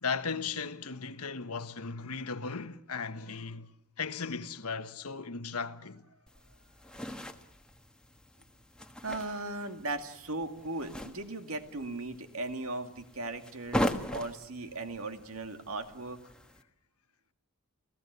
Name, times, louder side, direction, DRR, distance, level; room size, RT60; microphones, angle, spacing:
voice 1, 0.0-3.7 4.0-6.0, left 5 dB, 80° left, 1.2 m, -36 dB
sound 1, 6.3-16.6, equal, 5° left, 1.3 m, -40 dB
voice 2, 9.0-16.2, right 2 dB, 70° right, 2.2 m, -38 dB
29.0 x 16.5 x 8.1 m
head